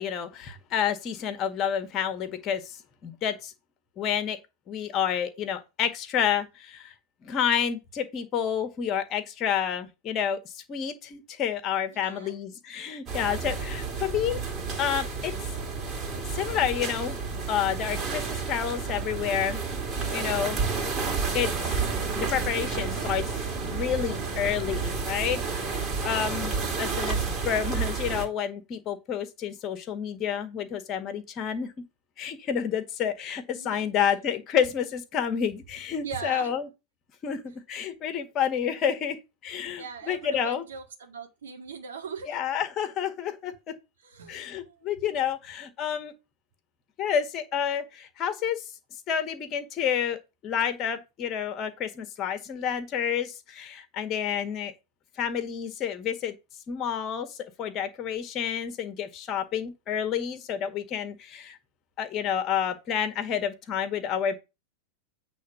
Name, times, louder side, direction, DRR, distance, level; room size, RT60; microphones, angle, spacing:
voice 1, 0.0-3.5 4.0-4.4 4.7-6.9 7.2-14.4 14.8-15.3 16.3-17.2 17.5-19.6 20.1-20.6 21.3-21.8 22.2-23.3 23.6-31.7 32.2-36.7 37.2-39.2 39.4-40.7 42.3-43.5 44.3-46.1 47.0-48.6 49.1-50.2 50.4-54.7 55.2-56.3 56.7-61.6 62.0-64.3, left 8 dB, 30° left, 1.7 m, -29 dB
voice 2, 11.9-12.4 33.5-33.9 36.0-36.6 39.8-42.4 44.0-44.8, right 6 dB, 65° right, 2.1 m, -41 dB
sound 1, 13.1-28.2, right 4 dB, 25° right, 2.8 m, -30 dB
8.5 x 3.7 x 6.8 m
figure-of-eight pair, 90°, 0 cm